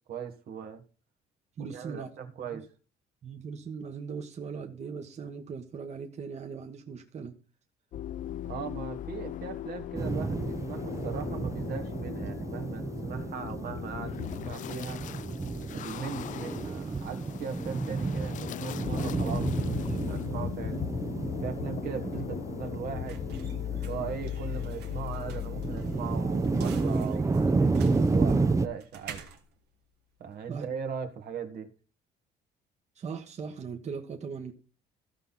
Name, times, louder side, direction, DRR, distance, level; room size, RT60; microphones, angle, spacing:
voice 1, 0.1-0.8 1.6-2.7 8.4-15.0 15.7-20.8 21.4-23.2 23.8-29.2 30.2-31.7, right 7 dB, 65° right, 1.8 m, -39 dB
voice 2, 1.6-2.6 3.2-7.4 30.5-30.6 32.9-34.5, right 5 dB, 40° right, 1.5 m, -39 dB
sound 1, 7.9-26.9, left 12 dB, 50° left, 0.4 m, -38 dB
sound 2, 9.9-28.7, right 3 dB, 20° right, 0.7 m, -31 dB
sound 3, 22.0-30.6, right 7 dB, 80° right, 2.0 m, -50 dB
15.0 x 5.8 x 4.0 m
cardioid pair, 110°, 17 cm